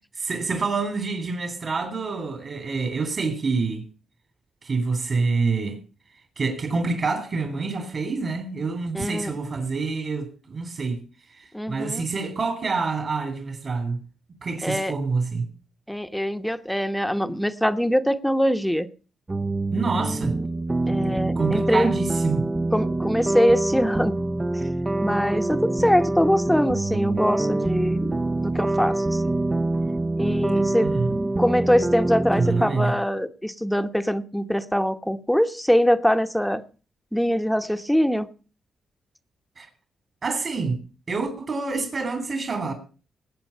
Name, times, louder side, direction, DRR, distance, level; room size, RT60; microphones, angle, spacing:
voice 1, 0.2-3.9 4.6-5.8 6.4-11.0 11.3-14.0 14.4-15.5 19.7-20.4 20.9-22.4 30.8-31.1 32.4-32.9 39.6-39.7 40.2-40.8 41.1-42.7, right 4 dB, 50° right, 3.1 m, -27 dB
voice 2, 8.9-9.4 11.5-12.0 14.6-14.9 15.9-18.9 20.9-21.9 22.7-24.2 24.5-24.7 25.0-29.3 30.2-30.9 31.4-36.6 37.1-38.3, equal, 5° left, 1.0 m, -23 dB
sound 1, 19.3-32.7, right 2 dB, 25° right, 0.7 m, -25 dB
19.5 x 7.9 x 5.6 m
cardioid pair, 75°, 0 cm